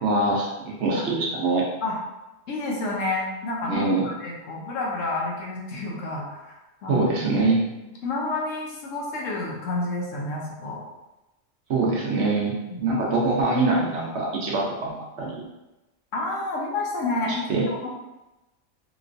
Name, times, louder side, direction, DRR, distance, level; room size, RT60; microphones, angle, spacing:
voice 1, 0.0-1.6 3.7-4.1 6.9-7.6 11.7-15.4 17.5-17.7, right 3 dB, 65° right, -2 dB, 0.9 m, -24 dB
voice 2, 2.5-6.6 6.8-7.2 8.0-10.8 12.7-12.8 16.1-17.9, left 2 dB, 75° left, -2 dB, 1.1 m, -29 dB
3.0 x 3.0 x 2.5 m, 1.0 s
omnidirectional pair, 1.3 m